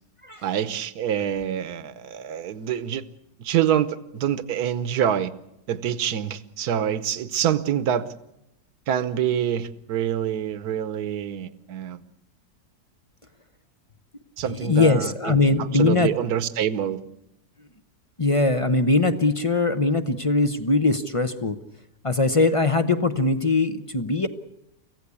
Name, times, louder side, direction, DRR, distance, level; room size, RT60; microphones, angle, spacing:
voice 1, 0.4-3.0 3.4-5.3 5.7-8.1 8.9-12.0 14.4-17.0, right 9 dB, 65° right, 15 dB, 1.4 m, -26 dB
voice 2, 14.4-16.1 18.2-21.6 22.0-24.3, left 3 dB, 30° left, 10 dB, 0.6 m, -21 dB
25.0 x 16.0 x 8.4 m, 0.84 s
omnidirectional pair, 1.9 m